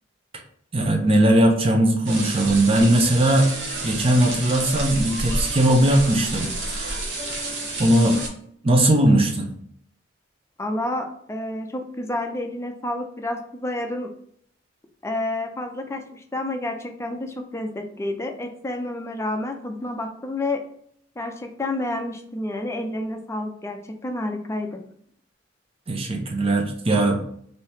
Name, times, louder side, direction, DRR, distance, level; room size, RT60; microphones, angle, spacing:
voice 1, 0.7-3.5 3.8-6.9 7.8-8.2 8.6-9.5 25.9-27.2, right 1 dB, 30° right, 2 dB, 0.6 m, -19 dB
sound 1, 2.1-8.3, right 2 dB, 80° right, 0.9 m, -30 dB
voice 2, 10.6-14.1 15.0-20.6 21.2-24.8, left 1 dB, 15° left, 4 dB, 0.4 m, -29 dB
2.9 x 2.7 x 3.3 m, 0.65 s
head